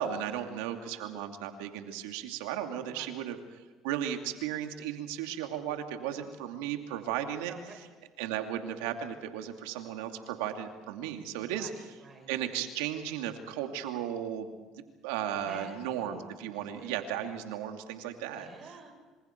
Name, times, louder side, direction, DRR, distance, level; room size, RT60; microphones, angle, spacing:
voice 1, 0.0-3.4 3.8-7.5 8.2-11.7 12.3-18.5, right 10 dB, 85° right, 5 dB, 2.5 m, -35 dB
voice 2, 2.9-3.3 7.5-7.8 11.4-12.3 15.5-17.0 18.3-18.9, right 4 dB, 35° right, 4 dB, 7.2 m, -50 dB
28.0 x 27.0 x 4.6 m, 1.3 s
supercardioid pair, 85°, 0 cm